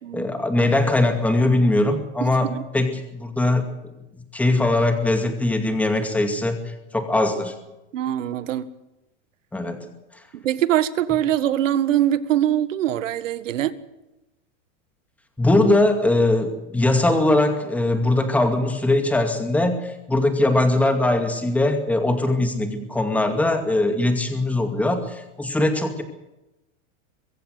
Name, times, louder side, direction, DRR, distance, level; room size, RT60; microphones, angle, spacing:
voice 1, 0.1-2.5 2.7-3.6 4.3-6.6 6.9-7.5 9.5-9.9 15.4-26.0, left 2 dB, 5° left, 6 dB, 2.3 m, -21 dB
voice 2, 2.2-2.6 7.9-8.7 10.3-13.7, right 11 dB, 80° right, 14 dB, 1.8 m, -23 dB
23.0 x 15.5 x 7.9 m, 0.95 s
supercardioid pair, 160°, 37 cm